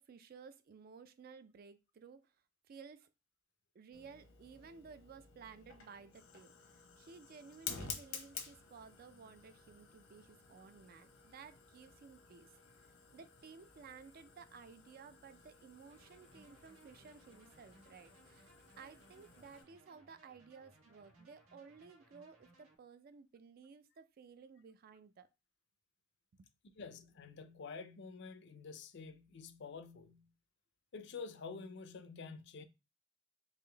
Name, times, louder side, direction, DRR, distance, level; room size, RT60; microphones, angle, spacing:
voice 1, 0.0-2.3 2.7-3.1 3.7-6.5 7.0-25.3 26.3-26.8, right 5 dB, 45° right, 0.3 m, -56 dB
Fire, 3.9-19.6, left 6 dB, 80° left, 0.8 m, -52 dB
sound 1, 15.9-22.8, right 1 dB, 85° right, 1.5 m, -65 dB
voice 2, 26.8-30.3 30.9-32.6, left 4 dB, 55° left, 0.4 m, -48 dB
3.7 x 2.5 x 3.3 m
head